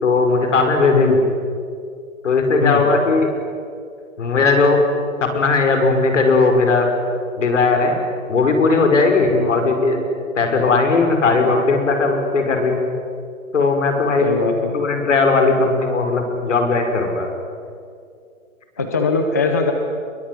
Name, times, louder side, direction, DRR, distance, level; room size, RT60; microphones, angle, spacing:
voice 1, 0.0-1.2 2.2-3.3 4.2-4.8 5.2-6.9 7.4-8.0 8.3-10.0 10.4-12.9 13.5-14.3 14.7-17.3, left 3 dB, 60° left, 5 dB, 5.9 m, -17 dB
voice 2, 14.2-14.7 18.8-19.7, left 4 dB, 15° left, 5 dB, 0.6 m, -20 dB
26.5 x 22.5 x 9.9 m, 2.3 s
hypercardioid pair, 170°, 41 cm